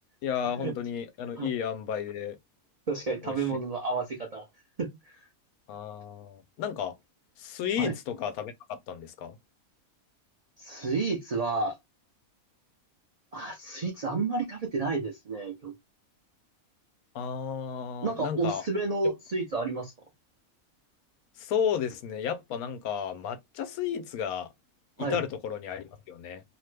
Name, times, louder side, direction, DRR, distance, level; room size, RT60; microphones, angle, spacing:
voice 1, 0.2-2.4 3.2-3.4 5.7-7.0 7.4-9.4 17.1-18.6 21.4-24.5 25.0-26.4, left 8 dB, 90° left, 1.1 m, -33 dB
voice 2, 2.9-4.5 4.8-5.2 7.8-7.9 10.6-11.8 13.3-15.7 18.0-19.9 25.0-25.2, right 3 dB, 60° right, 0.4 m, -31 dB
2.9 x 2.1 x 3.2 m
omnidirectional pair, 1.5 m